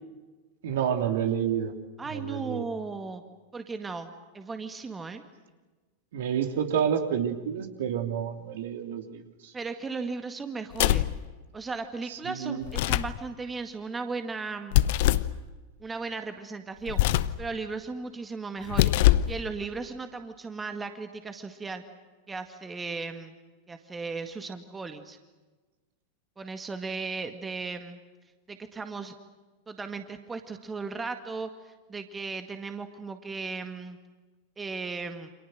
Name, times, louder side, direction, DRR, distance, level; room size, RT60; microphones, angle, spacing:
voice 1, 0.6-1.7 2.1-2.7 6.1-9.5 12.1-12.6, right 8 dB, 55° right, 6 dB, 2.9 m, -29 dB
voice 2, 2.0-3.2 3.5-5.2 9.5-11.1 11.5-14.8 15.8-17.0 17.4-18.9 19.3-21.8 22.3-23.3 23.7-25.2 26.4-28.0 28.5-29.1 29.7-34.0 34.6-35.3, right 4 dB, 15° right, 7 dB, 1.9 m, -36 dB
sound 1, 10.7-11.2 12.6-13.2 14.7-15.3 16.9-17.4 18.6-19.4, left 15 dB, 50° left, 0.9 m, -23 dB
29.5 x 27.0 x 6.5 m, 1.3 s
figure-of-eight pair, 90°, 0 cm